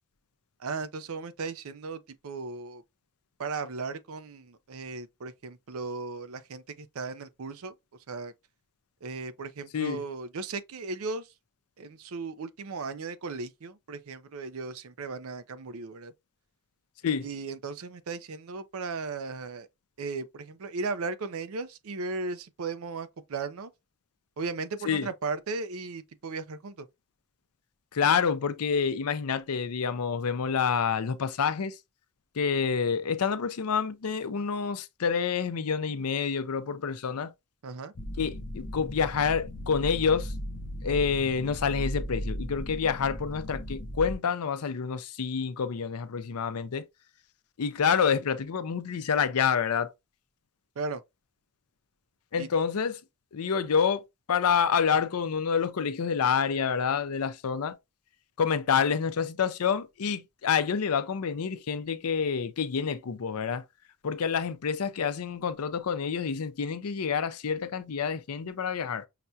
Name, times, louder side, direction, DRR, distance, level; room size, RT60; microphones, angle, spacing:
voice 1, 0.6-2.8 3.4-7.7 8.1-8.3 9.0-11.3 11.8-16.1 17.2-19.7 20.0-23.7 24.4-26.9 34.3-34.4 37.6-37.9 50.8-51.0 52.4-52.5, right 4 dB, 80° right, 0.5 m, -36 dB
voice 2, 27.9-31.7 32.4-37.3 38.2-40.3 40.8-46.8 47.6-49.9 52.3-53.0 53.3-54.0 54.3-57.8 58.4-63.6 64.0-69.0, left 6 dB, 85° left, 0.5 m, -28 dB
sound 1, 37.9-44.1, equal, 35° left, 0.7 m, -36 dB
5.7 x 2.3 x 2.6 m
head